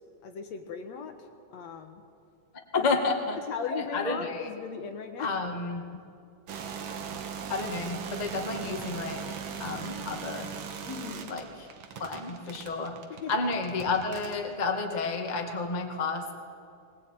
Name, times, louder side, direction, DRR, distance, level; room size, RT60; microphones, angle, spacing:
voice 1, 0.2-1.1 1.5-2.0 2.8-2.9 3.5-5.3 10.9-11.3 13.2-13.3, left 6 dB, 60° left, 6 dB, 2.3 m, -37 dB
voice 2, 2.7-3.4 3.7-4.5 5.2-6.0 7.5-10.5 11.3-11.7 12.0-13.0 13.3-16.3, left 3 dB, 20° left, 3 dB, 1.2 m, -31 dB
sound 1, 6.5-14.5, right 7 dB, 55° right, 1.9 m, -39 dB
21.0 x 20.5 x 9.0 m, 2.4 s
omnidirectional pair, 3.8 m